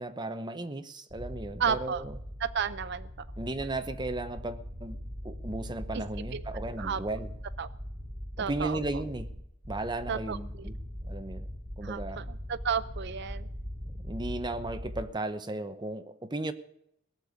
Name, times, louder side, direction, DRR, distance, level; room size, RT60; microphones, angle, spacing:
voice 1, 0.0-2.2 3.4-5.0 5.2-7.3 8.4-9.3 9.7-11.5 11.8-12.2 13.8-16.5, right 2 dB, 20° right, 0.9 m, -35 dB
sound 1, 1.1-15.0, equal, 40° right, 7.4 m, -40 dB
voice 2, 1.6-2.0 2.4-3.1 5.9-6.0 6.3-6.4 6.8-7.0 7.6-7.7 8.4-8.8 10.1-10.7 11.8-13.5, right 6 dB, 55° right, 0.5 m, -32 dB
17.5 x 7.0 x 9.6 m
head